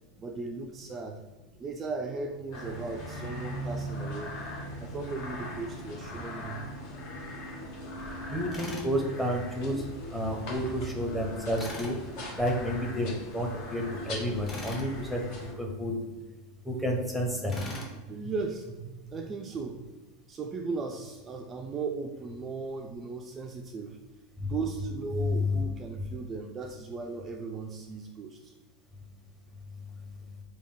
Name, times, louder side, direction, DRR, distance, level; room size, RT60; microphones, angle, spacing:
voice 1, 0.2-1.2 1.6-4.4 4.8-6.7 17.4-19.9 20.3-24.0 24.4-28.5, right 4 dB, 30° right, 3 dB, 0.3 m, -37 dB
sound 1, 2.5-15.5, left 1 dB, 55° left, 1.2 m, -40 dB
voice 2, 8.3-9.8 10.1-12.0 12.4-15.9 16.7-17.6 24.4-24.5 25.2-25.6, left 1 dB, ahead, 0 dB, 0.8 m, -30 dB
Tools, 8.5-8.9 11.5-12.0 14.5-14.9 17.5-17.9, left 1 dB, 25° left, 1.0 m, -40 dB
3.4 x 2.3 x 3.7 m, 1.2 s
hypercardioid pair, 90°, 0 cm